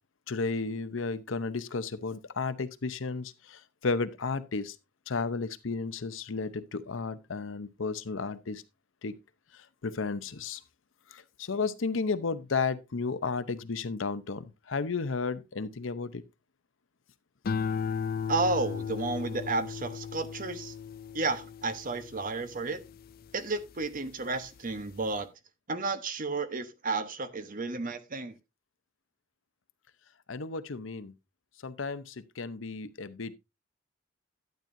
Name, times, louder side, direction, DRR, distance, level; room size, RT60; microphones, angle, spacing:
voice 1, 0.3-4.8 5.1-8.6 9.0-9.1 9.5-10.6 11.1-16.2 30.3-31.1 31.6-33.3, left 4 dB, 75° left, 0.8 m, -33 dB
sound 1, 17.4-24.0 24.4-24.9, left 6 dB, 50° left, 0.4 m, -36 dB
voice 2, 18.3-20.7 21.1-22.8 23.3-25.3 25.7-28.4, right 3 dB, 45° right, 1.0 m, -32 dB
12.0 x 8.9 x 2.6 m
head